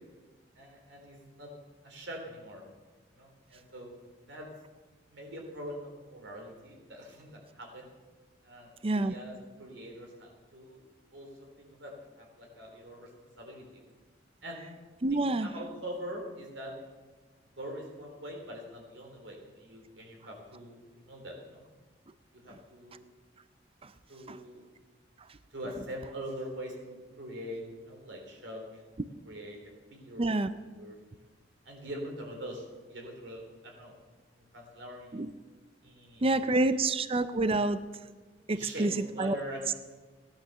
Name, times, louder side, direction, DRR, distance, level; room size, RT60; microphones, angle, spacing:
voice 1, 0.6-1.5 1.8-2.6 3.1-3.9 4.2-4.5 5.1-7.9 8.4-10.8 11.1-11.3 11.6-13.1 13.4-13.6 14.4-14.6 15.1-16.7 17.6-21.6 22.3-23.0 24.1-24.6 25.5-29.0 29.3-29.6 29.9-30.3 30.7-31.2 31.6-33.9 34.3-35.2 35.8-36.7 38.5-39.8, equal, 70° right, 1 dB, 4.0 m, -43 dB
voice 2, 8.8-9.1 15.0-15.5 23.8-23.9 24.3-24.4 30.2-30.5 35.1-35.3 36.2-37.8 38.5-39.4, right 2 dB, 30° right, 13 dB, 0.5 m, -28 dB
16.5 x 10.0 x 6.9 m, 1.3 s
head